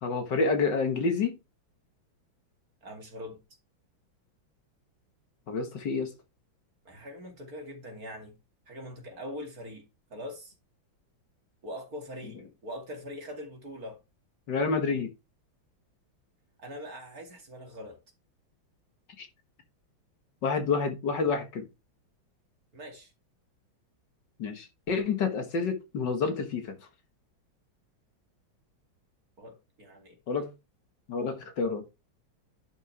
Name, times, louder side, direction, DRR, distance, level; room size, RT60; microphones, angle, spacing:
voice 1, 0.0-1.3 5.5-6.1 14.5-15.1 19.2-19.3 20.4-21.6 24.4-26.8 30.3-30.5 31.1-31.9, left 4 dB, 60° left, 2.0 m, -28 dB
voice 2, 2.8-3.4 6.8-8.3 8.7-9.8 10.1-10.5 11.6-14.0 16.6-18.0 22.7-23.1 29.4-30.2, equal, 45° right, 2.8 m, -42 dB
10.5 x 6.4 x 3.3 m
omnidirectional pair, 2.2 m